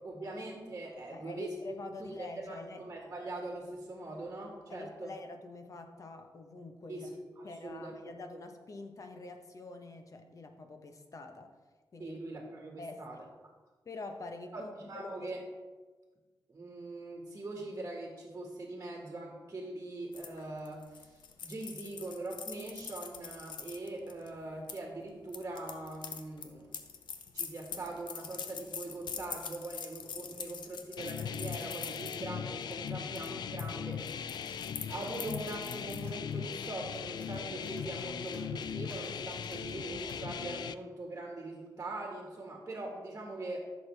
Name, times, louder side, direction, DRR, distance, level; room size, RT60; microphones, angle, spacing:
voice 1, 0.0-5.1 6.9-8.1 12.0-13.2 14.5-15.4 16.5-21.1 21.4-26.7 27.3-34.0 34.9-43.6, right 2 dB, 30° right, -1 dB, 1.8 m, -42 dB
voice 2, 1.1-2.8 4.7-7.1 7.4-11.5 11.9-12.2 12.8-13.3 13.8-15.3, left 3 dB, 45° left, 5 dB, 1.1 m, -46 dB
sound 1, 20.1-24.8 25.3-32.2 32.6-32.9 33.1-33.7 33.9-36.1, left 6 dB, 90° left, 0.8 m, -44 dB
sound 2, 31.0-40.7, left 7 dB, 70° left, 0.4 m, -39 dB
sound 3, 33.9-40.3, equal, 20° left, 3.4 m, -58 dB
14.5 x 6.7 x 3.4 m, 1.3 s
wide cardioid pair, 115°, 8 cm